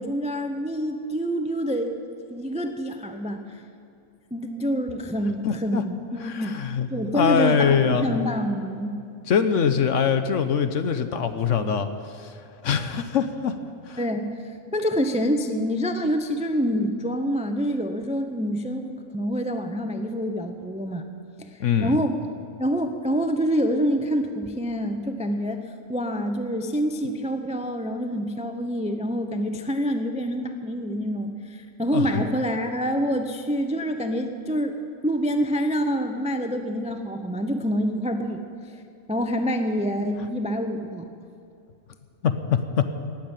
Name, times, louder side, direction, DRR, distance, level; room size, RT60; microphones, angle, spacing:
voice 1, 0.0-1.9 2.3-3.6 4.3-6.6 6.9-9.0 14.0-21.0 21.4-22.2 22.6-25.6 25.9-34.8 35.0-38.4 38.7-38.8 39.1-41.1, equal, 10° right, 6 dB, 0.4 m, -26 dB
voice 2, 5.4-5.8 6.2-6.9 7.1-8.1 9.3-11.9 12.1-12.3 12.6-13.6 13.9-14.0 21.6-22.0 31.9-32.2 42.2-42.9, left 7 dB, 60° left, 9 dB, 1.1 m, -23 dB
18.5 x 7.5 x 9.0 m, 2.5 s
omnidirectional pair, 1.6 m